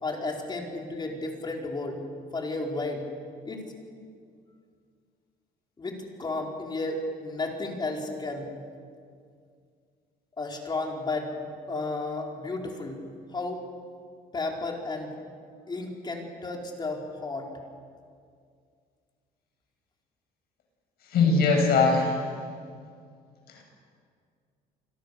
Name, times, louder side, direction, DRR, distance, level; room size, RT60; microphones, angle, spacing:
voice 1, 0.0-2.0 2.3-3.0 3.4-3.6 5.8-8.5 10.4-13.0 13.3-13.6 14.3-15.1 15.7-17.5, left 2 dB, 25° left, 0 dB, 4.5 m, -33 dB
voice 2, 21.1-22.2 23.5-23.6, left 4 dB, 70° left, 2 dB, 7.7 m, -21 dB
28.0 x 21.5 x 6.9 m, 2.2 s
cardioid pair, 110°, 17 cm